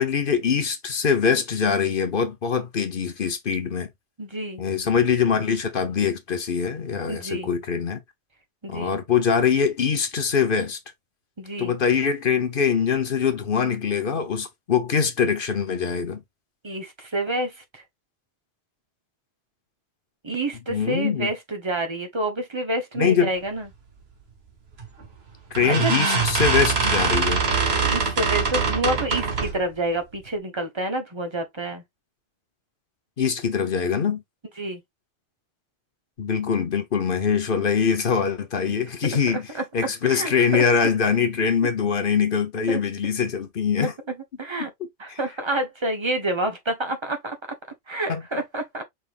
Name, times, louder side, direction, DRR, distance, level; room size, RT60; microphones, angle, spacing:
voice 1, 0.0-3.9 4.6-8.0 8.7-10.8 11.6-16.2 20.7-21.3 22.9-23.3 25.5-27.5 33.2-34.2 36.2-39.5 39.7-43.9 45.1-45.2 48.1-48.2, left 6 dB, 50° left, 1.0 m, -23 dB
voice 2, 4.2-4.6 7.1-7.5 8.6-9.0 11.4-11.7 16.6-17.8 20.2-23.7 25.6-26.0 27.8-31.8 34.6-34.8 38.6-38.8 39.5-39.6 40.0-40.6 42.7-42.8 43.8-44.7 45.0-47.6 47.9-48.8, right 1 dB, 25° right, 1.1 m, -28 dB
sound 1, 24.8-25.1 25.5-29.6, right 5 dB, 65° right, 1.5 m, -23 dB
5.4 x 3.8 x 2.5 m
omnidirectional pair, 1.2 m